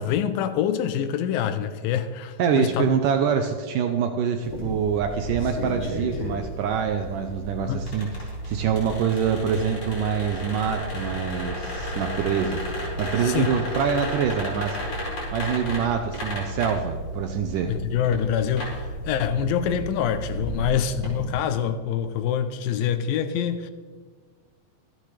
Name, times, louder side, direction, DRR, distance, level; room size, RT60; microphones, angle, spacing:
voice 1, 0.0-2.9 7.7-7.9 13.2-13.5 17.7-23.7, left 9 dB, 80° left, 2.3 m, -25 dB
voice 2, 2.4-12.6 13.0-14.8 15.3-17.8, right 7 dB, 80° right, 2.0 m, -25 dB
sound 1, 4.4-21.3, equal, 40° left, 5.6 m, -33 dB
25.0 x 9.1 x 3.3 m
omnidirectional pair, 4.3 m